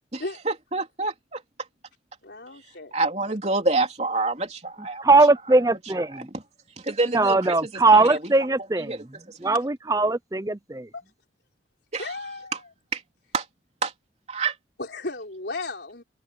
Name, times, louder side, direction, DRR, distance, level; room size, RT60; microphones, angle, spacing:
voice 1, 0.1-1.4 2.9-5.0 5.5-5.6 6.1-6.4 6.8-8.3 8.7-9.5 11.9-12.1 12.5-12.6 12.9-13.0 13.3-13.5 13.8-13.9 14.3-14.6, right 3 dB, 35° right, 3.5 m, -28 dB
voice 2, 2.2-2.9 8.0-8.2 10.9-11.0 12.0-12.5 14.8-16.0, left 2 dB, 70° left, 3.9 m, -35 dB
voice 3, 5.0-6.3 7.1-9.0 9.4-10.9, right 3 dB, 20° right, 0.6 m, -20 dB
head